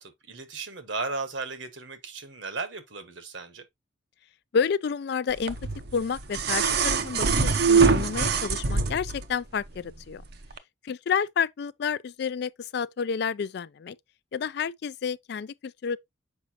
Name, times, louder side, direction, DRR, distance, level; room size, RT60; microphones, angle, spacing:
voice 1, 0.0-3.7, right 3 dB, 70° right, 1.3 m, -35 dB
voice 2, 4.5-5.6 5.9-10.2 10.8-14.0 14.3-16.0, left 6 dB, 55° left, 0.3 m, -30 dB
sound 1, 5.5-9.2 10.5-10.6, right 5 dB, 55° right, 0.7 m, -23 dB
7.0 x 5.2 x 2.8 m
head